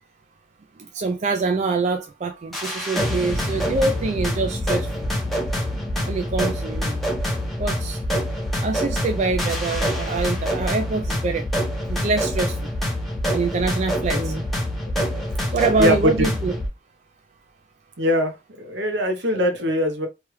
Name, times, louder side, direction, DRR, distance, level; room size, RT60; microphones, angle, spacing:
voice 1, 0.9-4.9 6.1-7.0 7.6-8.0 8.6-11.5 11.9-12.5 13.3-14.3 15.5-16.5, right 3 dB, 40° right, 0.3 m, -24 dB
sound 1, 2.5-16.7, equal, ahead, 0.9 m, -26 dB
voice 2, 14.1-14.4 15.1-15.2 15.8-16.3 18.0-20.1, equal, 70° right, 0.8 m, -22 dB
3.2 x 2.4 x 3.0 m
head